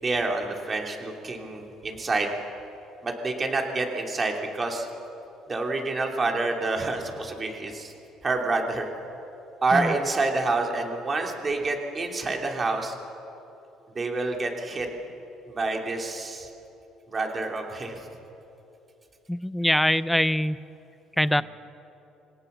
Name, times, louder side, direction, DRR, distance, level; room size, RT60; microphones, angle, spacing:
voice 1, 0.0-2.3 3.0-4.9 5.5-7.9 8.2-8.9 9.6-13.0 13.9-14.9 15.5-16.5 17.1-18.0 21.3-21.4, right 3 dB, 30° right, 2 dB, 3.2 m, -28 dB
voice 2, 19.3-20.6 21.2-21.4, left 1 dB, 5° left, 16 dB, 0.6 m, -23 dB
25.5 x 17.5 x 7.0 m, 3.0 s
supercardioid pair, 90°, 0 cm